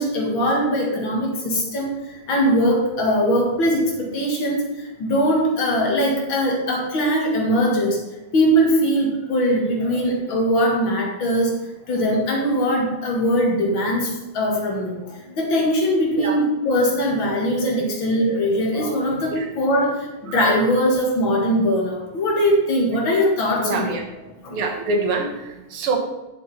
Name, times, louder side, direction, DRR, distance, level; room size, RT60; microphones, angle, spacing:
voice 1, 0.0-8.0 8.3-11.6 11.9-23.9 24.4-24.6, equal, 65° left, 0 dB, 2.7 m, -21 dB
voice 2, 23.6-24.0 24.5-26.0, right 3 dB, 85° right, 3 dB, 2.3 m, -25 dB
10.0 x 7.4 x 4.2 m, 1.0 s
omnidirectional pair, 2.4 m